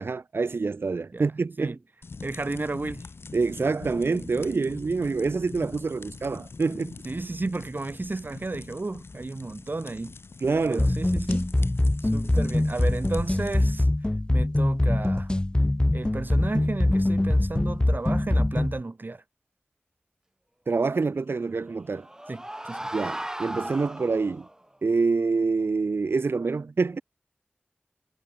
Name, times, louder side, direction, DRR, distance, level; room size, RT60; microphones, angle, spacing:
voice 1, 0.0-1.8 3.3-6.9 10.4-10.8 20.7-22.1 22.9-24.5 24.8-27.0, right 4 dB, 75° right, 0.6 m, -26 dB
sound 1, 2.0-13.9, left 4 dB, 85° left, 1.1 m, -43 dB
voice 2, 2.2-3.1 7.0-10.2 10.7-11.5 12.0-13.9 14.3-15.3 15.9-19.2 22.3-22.9, right 3 dB, 55° right, 2.7 m, -33 dB
sound 2, 10.8-18.8, left 1 dB, 20° left, 0.6 m, -23 dB
sound 3, 21.7-24.5, right 1 dB, 15° right, 1.1 m, -36 dB
wide cardioid pair, 60°, 4 cm